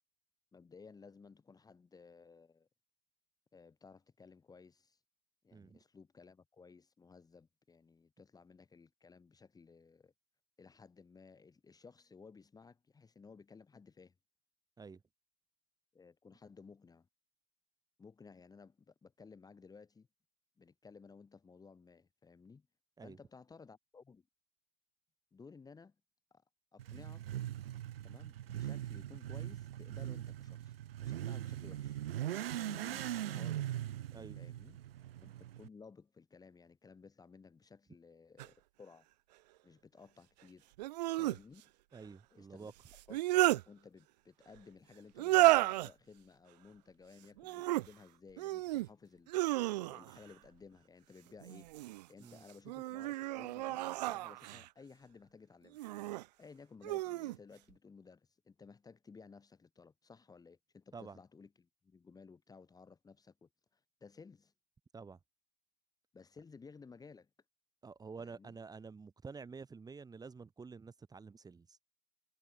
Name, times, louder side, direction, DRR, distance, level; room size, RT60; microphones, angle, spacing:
voice 1, 0.5-2.7 3.5-5.0 5.4-10.1 10.6-14.1 15.9-17.1 18.0-20.1 20.6-22.7 23.0-24.3 25.3-26.0 26.3-26.4 26.7-27.3 28.0-32.0 32.5-33.6 34.4-34.8 35.2-39.1 39.6-40.7 41.2-41.7 42.3-42.7 43.1-49.3 49.8-51.7 52.1-55.8 56.4-64.5 66.1-67.3 68.2-68.6, left 5 dB, 10° left, 3.5 m, -57 dB
Motorcycle / Accelerating revving vroom, 26.8-35.7, right 12 dB, 60° right, 1.2 m, -41 dB
sound 1, 38.4-38.5 40.8-41.4 42.9-43.6 45.2-45.9 47.4-47.9 48.4-48.9 49.3-50.2 51.4-52.0 52.6-54.7 55.7-56.2 56.8-57.4, right 17 dB, 40° right, 0.4 m, -32 dB
voice 2, 41.9-42.7 52.2-52.4 60.9-61.2 64.9-65.2 67.8-71.8, right 5 dB, 10° right, 4.1 m, -49 dB
hypercardioid pair, 115°, 33 cm